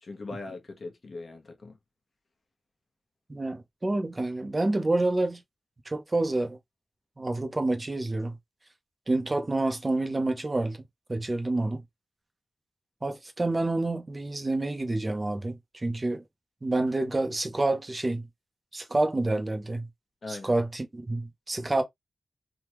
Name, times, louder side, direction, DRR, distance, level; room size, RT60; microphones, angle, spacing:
voice 1, 0.0-1.8 20.2-20.5, left 3 dB, 45° left, 1.0 m, -40 dB
voice 2, 3.3-5.4 5.9-6.6 7.2-8.3 9.1-10.8 11.1-11.8 13.0-16.2 16.6-18.3 18.7-19.9 20.3-21.8, right 2 dB, 25° right, 0.7 m, -28 dB
3.5 x 2.3 x 3.0 m
wide cardioid pair, 130°, 0 cm